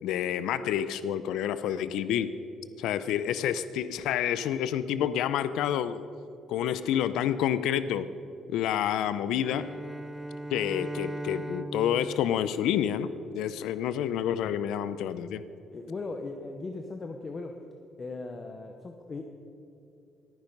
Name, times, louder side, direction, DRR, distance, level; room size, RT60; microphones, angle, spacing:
voice 1, 0.0-2.3 2.8-6.1 6.5-8.0 8.5-9.7 10.5-13.1 13.3-15.4, left 10 dB, 85° left, 14 dB, 0.5 m, -28 dB
Bowed string instrument, 9.4-13.6, right 1 dB, 10° right, 0.5 m, -39 dB
voice 2, 15.7-17.5 18.0-19.2, left 3 dB, 25° left, 4 dB, 0.8 m, -38 dB
20.0 x 9.9 x 5.3 m, 2.7 s
cardioid pair, 155°, 0 cm